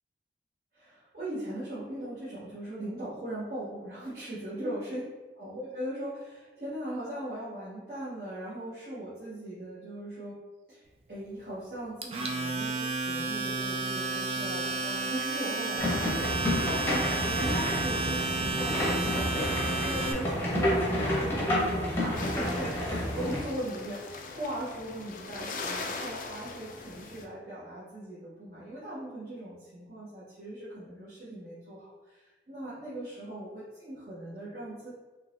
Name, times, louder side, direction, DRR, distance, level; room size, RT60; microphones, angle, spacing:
voice 1, 0.7-5.0 5.4-10.4 10.7-34.9, right 1 dB, 55° right, -11 dB, 0.9 m, -39 dB
Domestic sounds home sounds, 12.0-20.1, right 3 dB, 35° right, 0.3 m, -32 dB
sound 1, 15.8-23.4, left 1 dB, 15° left, 0.7 m, -29 dB
sound 2, 22.2-27.2, left 3 dB, 45° left, 0.3 m, -40 dB
3.8 x 2.8 x 2.5 m, 1.2 s
head